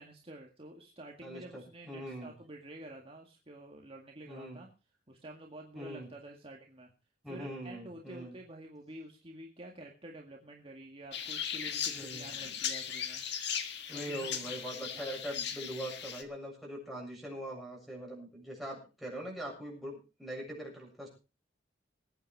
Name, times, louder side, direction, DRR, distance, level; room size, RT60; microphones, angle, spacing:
voice 1, 0.0-4.7 5.1-6.9 7.3-13.3 13.9-15.1, right 1 dB, 30° right, 0 dB, 2.0 m, -49 dB
voice 2, 1.2-2.3 4.3-4.6 5.7-6.1 7.2-8.4 11.9-12.5 13.9-19.9 20.2-21.1, right 1 dB, ahead, -3 dB, 7.6 m, -42 dB
sound 1, 11.1-16.2, left 8 dB, 65° left, 1.8 m, -38 dB
21.0 x 9.1 x 4.8 m, 0.33 s
head